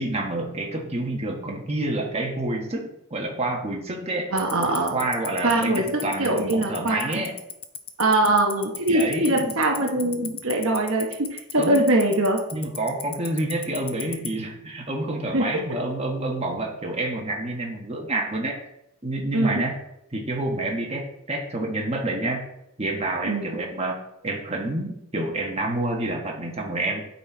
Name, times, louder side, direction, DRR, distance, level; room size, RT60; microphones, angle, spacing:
voice 1, 0.0-4.3 4.8-7.4 8.9-9.5 11.6-11.9 12.5-18.6 19.0-19.7 20.1-22.4 22.8-24.0 24.2-27.0, right 2 dB, 25° right, 0 dB, 1.3 m, -28 dB
voice 2, 4.3-5.0 5.4-7.2 8.0-12.4 15.3-15.8 19.3-19.6 23.2-23.6, right 2 dB, 60° right, 1 dB, 1.0 m, -23 dB
Tick-tock, 4.4-14.3, left 10 dB, 25° left, 0.6 m, -32 dB
9.6 x 4.3 x 4.3 m, 0.83 s
head